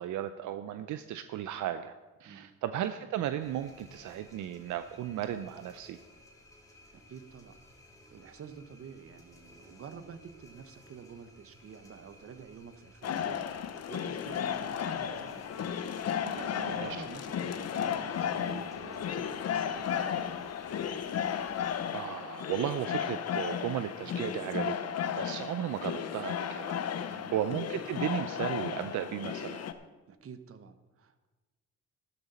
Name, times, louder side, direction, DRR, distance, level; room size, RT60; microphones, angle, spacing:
voice 1, 0.0-1.9 2.2-6.0 16.7-17.0 21.3-21.5 21.9-24.7 25.2-26.8 27.0-29.6, right 11 dB, 75° right, 10 dB, 0.6 m, -35 dB
sound 1, 3.4-21.8, left 1 dB, 10° left, 2.3 m, -58 dB
voice 2, 6.9-7.6 8.1-15.5 15.9-19.8 27.1-27.3 30.1-31.3, right 6 dB, 50° right, 10 dB, 1.1 m, -49 dB
sound 2, 13.0-29.7, left 8 dB, 55° left, 0.9 m, -34 dB
12.0 x 12.0 x 4.3 m, 1.2 s
cardioid pair, 90°, 30 cm